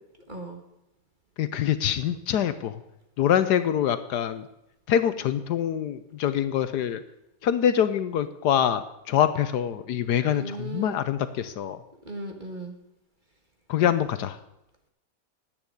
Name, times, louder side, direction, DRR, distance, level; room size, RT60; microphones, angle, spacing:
voice 1, 0.3-0.6 10.3-11.0 12.0-12.8, right 2 dB, 30° right, 4 dB, 1.6 m, -37 dB
voice 2, 1.4-2.8 3.2-4.5 4.9-7.0 7.4-11.8 13.7-14.4, left 9 dB, 70° left, 12 dB, 1.2 m, -25 dB
10.5 x 9.0 x 8.4 m, 0.89 s
omnidirectional pair, 1.9 m